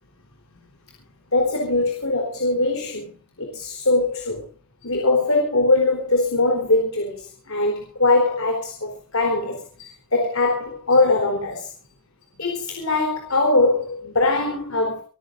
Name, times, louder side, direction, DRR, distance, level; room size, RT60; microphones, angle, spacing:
voice 1, 1.3-3.1 3.4-4.4 4.8-11.7 12.4-15.0, left 2 dB, 75° left, 4.1 m, -21 dB
27.0 x 15.0 x 2.7 m
head